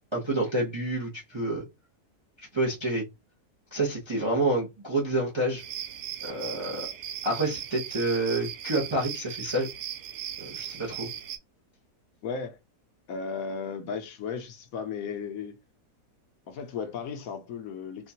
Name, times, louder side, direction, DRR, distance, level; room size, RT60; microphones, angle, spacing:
voice 1, 0.1-1.6 2.5-3.0 3.7-5.6 6.2-6.9 7.2-9.7 10.4-11.1, right 2 dB, 30° right, 0.5 m, -28 dB
sound 1, 5.6-11.4, right 10 dB, 70° right, 0.9 m, -38 dB
voice 2, 12.2-12.6 13.1-15.6 16.5-18.1, left 5 dB, 70° left, 1.0 m, -35 dB
4.3 x 2.3 x 2.7 m
omnidirectional pair, 1.7 m